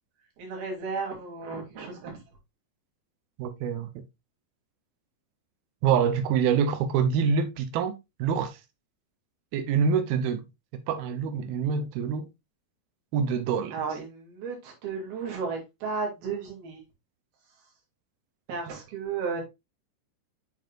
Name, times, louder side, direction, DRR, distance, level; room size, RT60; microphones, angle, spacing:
voice 1, 0.4-2.2 13.7-16.8 18.5-19.4, right 5 dB, 55° right, 4.4 m, -34 dB
voice 2, 3.4-3.9 5.8-7.9 8.2-8.6 9.5-10.5 10.9-12.3 13.1-13.8, right 6 dB, 90° right, 2.1 m, -25 dB
7.8 x 7.1 x 2.5 m
omnidirectional pair, 5.5 m